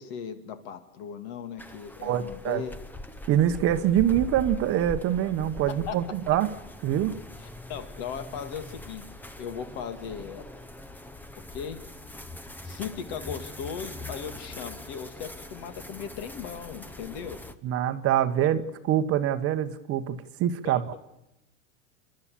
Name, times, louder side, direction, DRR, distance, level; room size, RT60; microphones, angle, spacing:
voice 1, 0.0-2.7 5.9-6.0 7.4-9.1 9.4-10.4 11.5-11.8 12.6-17.4 18.4-18.5 20.6-21.0, left 7 dB, 55° left, 9 dB, 2.3 m, -38 dB
sound 1, 1.6-17.6, left 1 dB, 5° left, 0.8 m, -42 dB
voice 2, 2.0-2.6 3.3-6.5 6.8-7.1 17.6-21.0, right 11 dB, 35° right, 10 dB, 1.1 m, -25 dB
29.5 x 12.0 x 8.6 m, 0.91 s
supercardioid pair, 130°, 40 cm